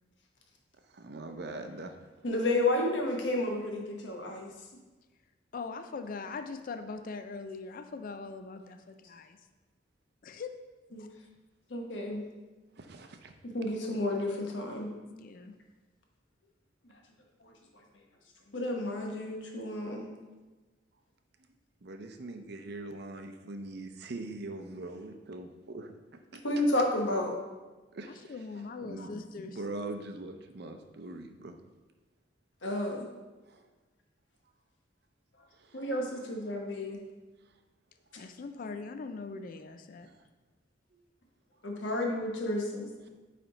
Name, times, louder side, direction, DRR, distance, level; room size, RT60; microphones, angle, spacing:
voice 1, 0.9-2.0 12.7-13.3 21.8-25.9 26.3-26.6 27.9-28.3 28.8-29.1 29.4-31.5 33.5-33.7 35.6-35.8 40.0-40.1 40.9-41.0, right 2 dB, 60° right, 6 dB, 0.6 m, -42 dB
voice 2, 2.2-4.5 10.9-11.0 11.7-12.3 13.4-14.9 16.8-16.9 17.4-17.5 18.5-20.1 26.4-27.3 32.6-33.1 35.7-37.0 41.6-42.9, left 1 dB, 85° left, 1 dB, 1.1 m, -31 dB
voice 3, 5.5-9.4 10.2-10.5 11.0-11.1 15.1-15.5 28.1-29.6 38.2-40.1, left 4 dB, 50° left, 8 dB, 0.4 m, -41 dB
8.7 x 3.4 x 3.9 m, 1.2 s
head